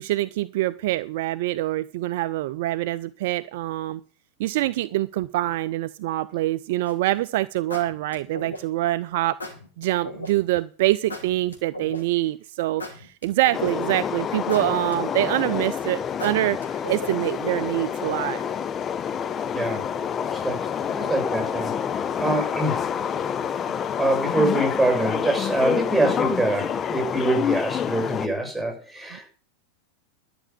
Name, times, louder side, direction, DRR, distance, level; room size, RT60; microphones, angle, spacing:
voice 1, 0.0-4.0 4.4-9.4 9.8-18.5 29.1-29.2, right 16 dB, 50° right, 0.5 m, -25 dB
sound 1, 6.9-7.2 7.7-8.9 9.4-10.3 11.1-12.3 12.8-13.9 14.5-15.6 16.2-17.3, left 1 dB, 75° left, 4.5 m, -37 dB
sound 2, 13.5-28.3, left 8 dB, 25° left, 0.8 m, -28 dB
voice 2, 19.5-19.9 20.3-21.7 22.2-22.8 24.0-29.3, right 2 dB, ahead, 6.3 m, -25 dB
12.0 x 7.0 x 8.7 m
figure-of-eight pair, 90°, 0 cm